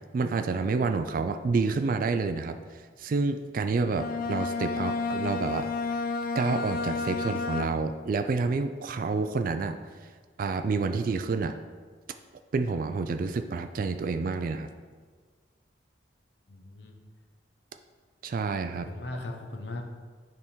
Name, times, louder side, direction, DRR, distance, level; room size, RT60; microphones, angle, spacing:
voice 1, 0.1-2.6 3.0-5.7 6.3-9.8 10.4-11.6 12.5-14.7 18.2-18.9, right 4 dB, 50° right, 9 dB, 0.3 m, -28 dB
Bowed string instrument, 3.8-8.1, left 4 dB, 50° left, 0.3 m, -31 dB
voice 2, 16.5-17.0 18.9-19.8, left 2 dB, 70° left, 3 dB, 0.9 m, -38 dB
9.5 x 3.6 x 4.3 m, 1.5 s
head